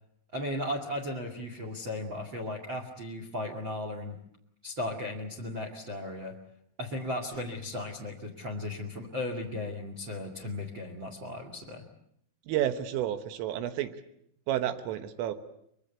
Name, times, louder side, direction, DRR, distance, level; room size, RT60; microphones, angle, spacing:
voice 1, 0.3-4.2 4.6-6.3 6.8-11.8, left 1 dB, 45° right, 4 dB, 1.5 m, -36 dB
voice 2, 12.5-14.0 14.5-15.3, right 11 dB, 80° right, 10 dB, 3.8 m, -30 dB
24.5 x 22.5 x 8.3 m, 0.72 s
omnidirectional pair, 5.9 m